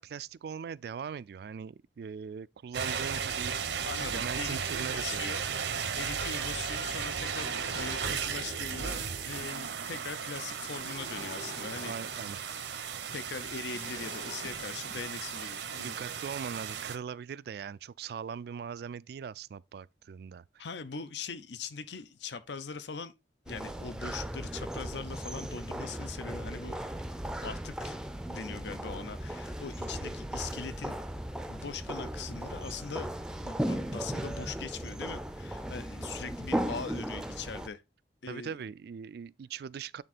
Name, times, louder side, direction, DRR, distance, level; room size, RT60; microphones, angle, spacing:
voice 1, 0.0-3.5 4.1-5.6 11.8-12.4 15.8-20.7 38.3-40.0, right 7 dB, 60° right, 0.3 m, -40 dB
sound 1, 2.7-17.0, right 7 dB, 80° right, 0.8 m, -35 dB
voice 2, 3.8-5.4 5.9-11.9 13.1-16.0 20.6-23.1 23.5-26.8 27.4-28.0 28.3-31.0 31.5-33.1 33.4-37.8 38.2-38.6, left 5 dB, 75° left, 0.7 m, -41 dB
sound 2, 5.4-6.4 6.8-9.8 10.3-15.8, equal, 45° left, 1.9 m, -48 dB
sound 3, 23.5-37.7, right 1 dB, 5° right, 0.5 m, -37 dB
8.9 x 3.6 x 4.1 m
head